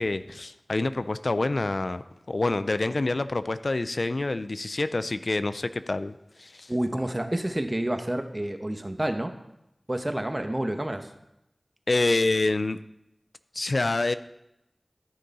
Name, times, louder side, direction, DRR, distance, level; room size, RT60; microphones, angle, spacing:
voice 1, 0.0-6.7 11.9-12.8 13.5-14.1, left 2 dB, 70° left, 13 dB, 0.4 m, -27 dB
voice 2, 6.7-9.3 9.9-11.1, right 1 dB, 30° right, 7 dB, 0.9 m, -29 dB
13.5 x 6.6 x 4.1 m, 0.86 s
wide cardioid pair, 50°, 0 cm